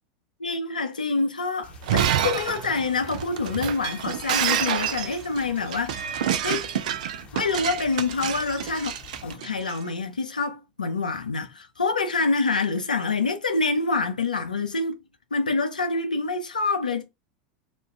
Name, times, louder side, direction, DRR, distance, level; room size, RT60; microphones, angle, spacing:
voice 1, 0.4-6.7 7.3-8.9 9.2-14.9 15.3-17.0, left 3 dB, 85° left, 0.5 m, -26 dB
sound 1, 1.6-9.4, left 7 dB, 30° left, 0.8 m, -48 dB
Shatter, 1.7-9.8, right 10 dB, 65° right, 0.3 m, -28 dB
2.4 x 2.2 x 3.4 m
figure-of-eight pair, 85°, 4 cm